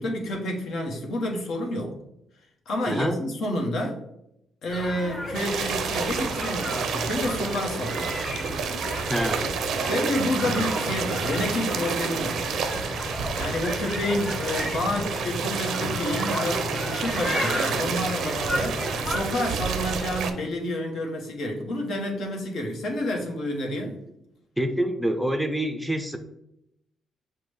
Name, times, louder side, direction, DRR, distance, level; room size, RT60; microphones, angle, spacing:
voice 1, 0.0-1.9 2.7-4.0 4.6-8.3 9.9-12.5 13.3-24.0, left 1 dB, 70° left, 1 dB, 0.9 m, -29 dB
voice 2, 2.9-3.2 9.1-9.6 12.7-12.8 23.8-24.0 24.6-26.2, right 1 dB, 5° right, 5 dB, 0.5 m, -27 dB
sound 1, 4.7-19.2, left 1 dB, 15° left, 0.9 m, -33 dB
sound 2, 5.3-20.3, right 6 dB, 75° right, 0.4 m, -29 dB
5.8 x 2.1 x 3.3 m, 0.82 s
cardioid pair, 90°, 0 cm